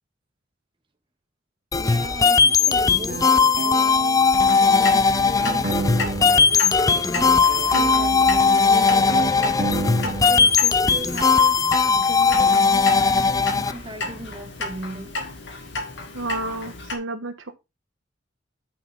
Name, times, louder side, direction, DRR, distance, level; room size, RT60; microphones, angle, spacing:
sound 1, 1.7-13.7, left 5 dB, 20° left, 0.4 m, -18 dB
voice 1, 1.8-4.2 4.5-15.2, right 1 dB, 25° right, 1.4 m, -38 dB
sound 2, 2.6-6.5 6.7-10.6, right 2 dB, 45° right, 0.9 m, -30 dB
Clock, 4.4-17.0, left 2 dB, 65° left, 2.3 m, -33 dB
voice 2, 16.1-17.6, right 2 dB, 80° right, 1.3 m, -31 dB
9.3 x 6.0 x 3.6 m
head